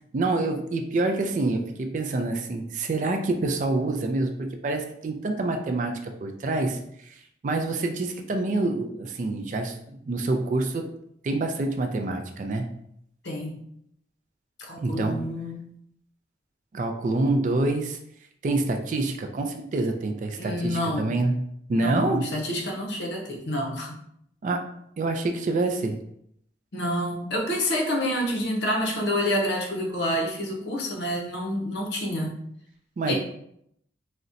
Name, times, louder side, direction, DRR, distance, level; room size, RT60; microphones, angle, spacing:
voice 1, 0.1-10.9 11.2-12.7 14.8-15.2 16.7-18.0 18.4-22.3 24.4-24.7 25.0-26.0 33.0-33.1, right 2 dB, 40° right, 5 dB, 0.3 m, -27 dB
voice 2, 13.2-13.6 14.6-15.7 20.4-21.1 21.7-24.0 26.7-32.3 33.1-33.2, equal, 70° left, 0 dB, 0.7 m, -28 dB
3.9 x 2.1 x 2.5 m, 0.73 s
head